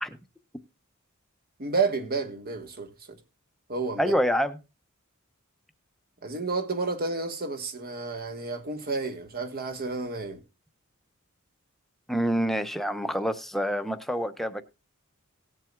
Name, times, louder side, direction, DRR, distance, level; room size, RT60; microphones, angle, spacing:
voice 1, 1.6-3.2 3.7-4.1 6.2-10.4, right 4 dB, 45° right, 1.4 m, -31 dB
voice 2, 4.0-4.6 12.1-14.6, equal, ahead, 0.7 m, -27 dB
18.5 x 7.4 x 2.4 m
head